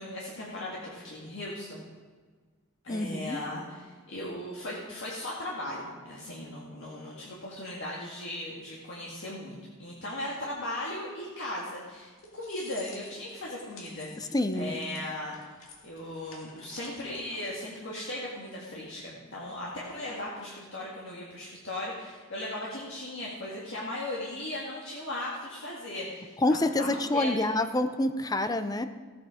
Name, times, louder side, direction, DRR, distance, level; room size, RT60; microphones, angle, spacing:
voice 1, 0.0-1.8 2.8-15.3 15.8-27.5, left 1 dB, 60° left, -5 dB, 2.0 m, -37 dB
voice 2, 2.9-3.4 14.2-14.7 26.4-28.9, left 1 dB, 20° left, 10 dB, 0.5 m, -27 dB
sound 1, 11.9-17.4, left 3 dB, 85° left, 2.1 m, -52 dB
15.0 x 8.4 x 5.0 m, 1.5 s
head